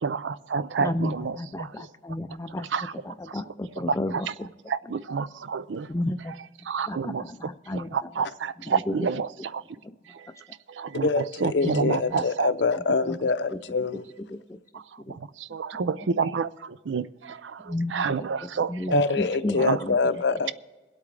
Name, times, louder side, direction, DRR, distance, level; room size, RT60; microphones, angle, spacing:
voice 1, 0.0-1.9 2.7-2.9 3.3-3.4 3.9-4.3 4.7-5.9 6.6-9.6 10.1-12.5 14.7-19.0 19.6-19.8, right 5 dB, 85° right, 0.5 m, -29 dB
voice 2, 0.8-2.7 3.0-4.5 5.9-6.3 6.9-8.1 8.7-8.9 9.8-9.9 11.6-12.2 12.7-13.2 13.5-13.6 14.3-14.6 15.1-15.2 17.6-18.3 18.6-20.0, left 1 dB, 15° left, 0.4 m, -33 dB
voice 3, 11.0-14.0 18.9-20.5, left 4 dB, 70° left, 0.6 m, -25 dB
23.5 x 8.5 x 3.3 m
head